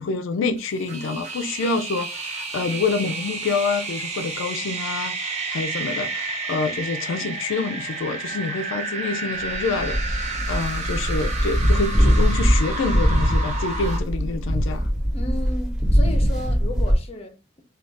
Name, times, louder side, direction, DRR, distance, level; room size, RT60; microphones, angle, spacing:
voice 1, 0.0-14.9, left 4 dB, 85° left, 0.3 m, -27 dB
sound 1, 0.6-14.0, right 3 dB, 40° right, 0.7 m, -31 dB
sound 2, 9.4-16.9, equal, 5° right, 0.9 m, -21 dB
voice 2, 15.1-17.6, left 1 dB, 35° left, 0.6 m, -34 dB
2.5 x 2.3 x 3.3 m
head